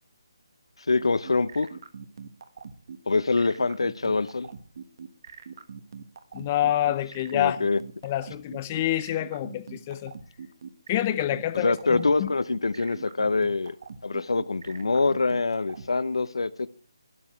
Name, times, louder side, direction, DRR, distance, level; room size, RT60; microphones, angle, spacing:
voice 1, 0.9-1.7 3.1-4.5 7.3-7.8 11.5-13.7 14.0-16.7, left 3 dB, 90° left, 0.8 m, -25 dB
sound 1, 1.0-15.9, right 6 dB, 45° right, 1.4 m, -42 dB
voice 2, 6.3-7.6 8.0-10.1 10.9-12.3, left 13 dB, 20° left, 0.6 m, -27 dB
12.5 x 10.5 x 4.6 m
hypercardioid pair, 170°, 3 cm